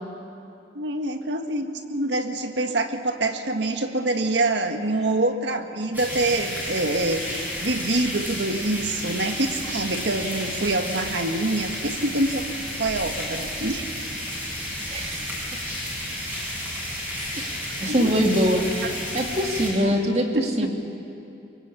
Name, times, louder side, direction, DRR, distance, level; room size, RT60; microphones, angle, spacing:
voice 1, 0.7-12.5 12.8-13.9 16.5-16.6 17.9-18.1 20.3-20.7, right 2 dB, 90° right, 6 dB, 1.8 m, -26 dB
sound 1, 5.9-19.7, left 1 dB, 10° right, 7.7 m, -32 dB
voice 2, 14.9-15.2 17.8-20.7, equal, 35° right, 2 dB, 2.4 m, -23 dB
23.5 x 23.0 x 8.5 m, 2.7 s
head